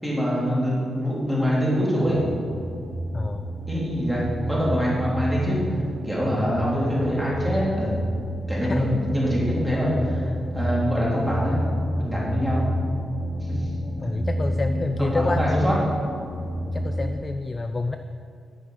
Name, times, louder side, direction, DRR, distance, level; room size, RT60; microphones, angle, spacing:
voice 1, 0.0-2.3 3.7-5.6 6.0-8.0 8.5-11.6 12.0-12.7 13.5-13.7 14.0-14.1 15.0-15.8, equal, ahead, -7 dB, 3.1 m, -24 dB
sound 1, 2.0-17.1, equal, 50° right, 3.0 m, -30 dB
voice 2, 3.1-3.5 6.3-6.4 8.6-9.2 14.0-16.0 16.7-18.0, left 3 dB, 20° left, 7 dB, 0.4 m, -28 dB
9.9 x 8.7 x 6.4 m, 2.3 s
wide cardioid pair, 175°, 0 cm